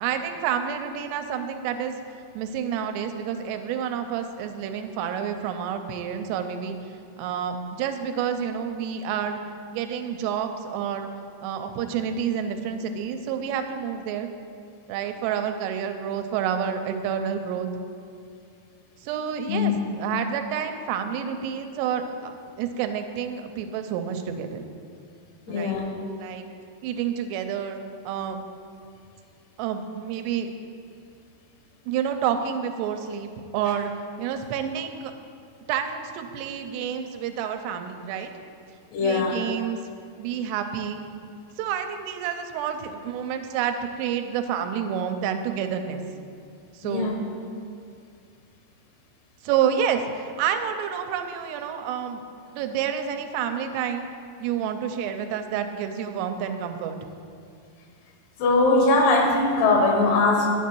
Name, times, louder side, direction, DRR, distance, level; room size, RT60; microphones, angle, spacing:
voice 1, 0.0-1.9 2.3-6.8 7.2-9.4 9.7-11.1 11.4-14.3 14.9-17.7 19.0-24.7 25.5-25.8 26.2-26.5 26.8-28.4 29.6-30.5 31.9-33.9 34.2-35.1 35.7-38.3 39.0-39.8 40.2-41.0 41.6-46.0 46.7-47.1 49.4-52.2 52.6-54.1 54.4-57.0, right 8 dB, 90° right, 6 dB, 2.7 m, -29 dB
voice 2, 19.5-19.8 25.5-25.9 38.9-39.4 46.8-47.1 58.4-60.5, left 3 dB, 80° left, 1 dB, 3.1 m, -21 dB
9.8 x 8.3 x 4.5 m, 2.4 s
omnidirectional pair, 4.8 m